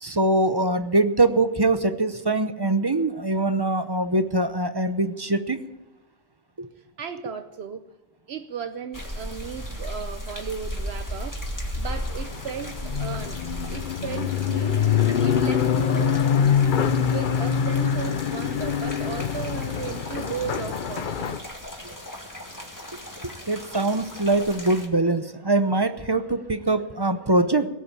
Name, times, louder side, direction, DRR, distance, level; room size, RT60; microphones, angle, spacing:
voice 1, 0.0-5.6 6.6-6.7 23.5-27.7, right 2 dB, 25° right, 10 dB, 0.7 m, -23 dB
voice 2, 6.8-7.8 8.3-11.4 11.8-14.8 15.2-16.1 17.0-21.4, right 7 dB, 70° right, 8 dB, 1.0 m, -35 dB
sound 1, 8.9-24.9, equal, 15° left, 2.0 m, -37 dB
sound 2, 11.9-21.4, left 7 dB, 55° left, 0.8 m, -24 dB
17.5 x 8.5 x 8.7 m, 1.1 s
omnidirectional pair, 1.1 m